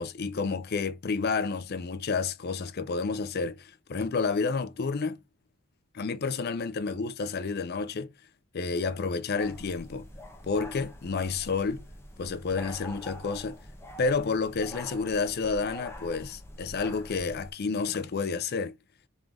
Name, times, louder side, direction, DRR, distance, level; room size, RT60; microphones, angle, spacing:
voice 1, 0.0-5.2 5.9-8.1 8.5-10.1 10.4-11.8 12.2-13.6 14.0-18.8, left 4 dB, 50° left, 0.5 m, -30 dB
sound 1, 9.4-17.5, left 1 dB, 10° left, 0.8 m, -45 dB
3.7 x 3.2 x 3.7 m
head